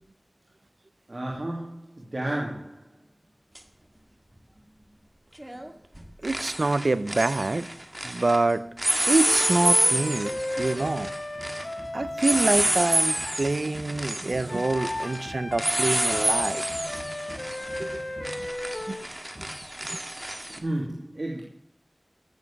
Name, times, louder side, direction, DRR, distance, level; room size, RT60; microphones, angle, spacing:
voice 1, 1.1-2.8 20.5-21.4, right 1 dB, 50° right, -2 dB, 2.7 m, -32 dB
sound 1, 3.5-3.6 5.4-5.7 5.9-8.4 8.8-20.6, right 1 dB, 20° right, 1.8 m, -28 dB
voice 2, 6.2-7.7 8.0-8.7 9.1-11.1 11.9-16.6 17.8-17.9 18.9-19.0 19.9-20.0, right 2 dB, 75° right, 15 dB, 0.7 m, -26 dB
sound 2, 9.2-13.5 14.5-19.1, left 1 dB, 40° left, 1.4 m, -35 dB
15.5 x 7.3 x 7.5 m, 0.69 s
wide cardioid pair, 50°, 0 cm